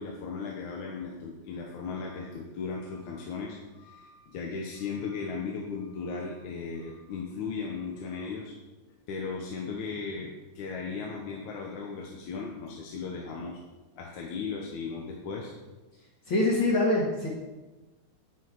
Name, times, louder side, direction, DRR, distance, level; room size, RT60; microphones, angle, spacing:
voice 1, 0.0-8.5 9.1-13.6 14.0-15.5, left 5 dB, 80° left, -1 dB, 2.6 m, -36 dB
voice 2, 16.3-17.3, left 2 dB, 45° left, -6 dB, 2.7 m, -24 dB
10.0 x 9.9 x 4.8 m, 1.2 s
omnidirectional pair, 3.3 m